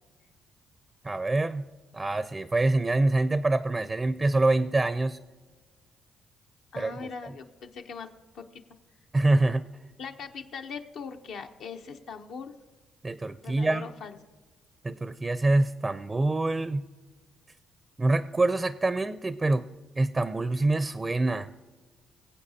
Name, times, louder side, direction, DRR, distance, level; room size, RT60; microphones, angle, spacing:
voice 1, 1.0-1.6 1.9-5.2 6.8-7.1 9.1-9.6 13.0-13.9 14.8-16.8 18.0-19.7 20.0-21.5, right 2 dB, 20° right, 13 dB, 0.4 m, -25 dB
voice 2, 6.7-8.6 10.0-12.5 13.4-14.2, left 5 dB, 75° left, 4 dB, 0.7 m, -40 dB
22.0 x 8.0 x 2.8 m, 1.3 s
cardioid pair, 90°, 0 cm